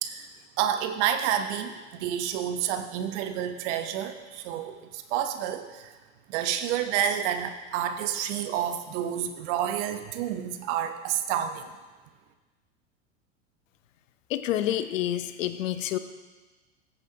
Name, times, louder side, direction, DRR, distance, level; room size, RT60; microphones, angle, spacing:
voice 1, 0.0-6.0 6.3-11.7, right 9 dB, 60° right, 8 dB, 1.0 m, -29 dB
voice 2, 14.3-16.0, left 12 dB, 75° left, 11 dB, 0.7 m, -28 dB
14.0 x 8.2 x 2.9 m, 1.3 s
hypercardioid pair, 95°, 38 cm